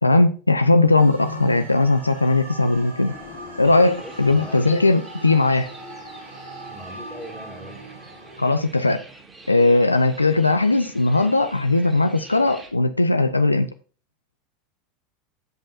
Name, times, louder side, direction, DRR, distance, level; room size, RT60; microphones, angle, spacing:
voice 1, 0.0-3.1 3.6-5.7 8.4-9.0 9.5-13.7, left 2 dB, 85° left, 0.4 m, -18 dB
sound 1, 0.9-8.4, equal, 85° right, 2.3 m, -39 dB
sound 2, 3.1-5.4, left 7 dB, 45° left, 1.6 m, -45 dB
sound 3, 3.6-12.7, right 3 dB, 20° right, 2.3 m, -46 dB
voice 2, 4.0-4.6 6.7-7.8, equal, ahead, 2.0 m, -40 dB
15.0 x 5.3 x 2.6 m
figure-of-eight pair, 80°, 0 cm